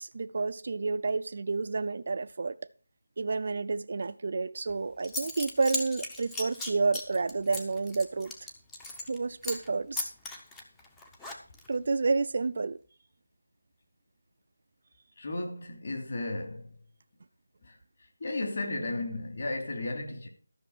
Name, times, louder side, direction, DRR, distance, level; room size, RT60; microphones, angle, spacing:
voice 1, 0.0-2.6 3.2-8.3 9.1-10.1 11.7-12.8, right 4 dB, 40° right, 0.6 m, -30 dB
Zipper (clothing) / Coin (dropping), 4.7-4.8 5.0-9.2 9.4-9.7 10.0-11.7, left 2 dB, 5° left, 0.8 m, -37 dB
voice 2, 15.2-16.8 17.6-17.8 18.2-20.3, left 2 dB, 40° left, 3.0 m, -34 dB
13.5 x 6.3 x 6.1 m
figure-of-eight pair, 175°, 0 cm